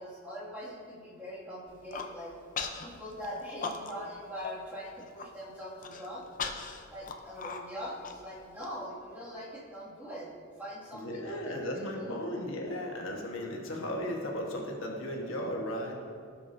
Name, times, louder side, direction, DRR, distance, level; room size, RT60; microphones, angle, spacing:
voice 1, 0.0-2.3 2.8-6.3 6.9-12.2, equal, 10° right, -8 dB, 2.2 m, -42 dB
Human voice, 1.7-2.1 2.6-2.9 3.2-4.1 4.4-4.5 4.9-5.3 5.8-8.7, left 5 dB, 40° left, 0.6 m, -38 dB
voice 2, 10.9-16.0, equal, 80° left, -1 dB, 1.3 m, -35 dB
15.0 x 5.9 x 2.7 m, 2.1 s
head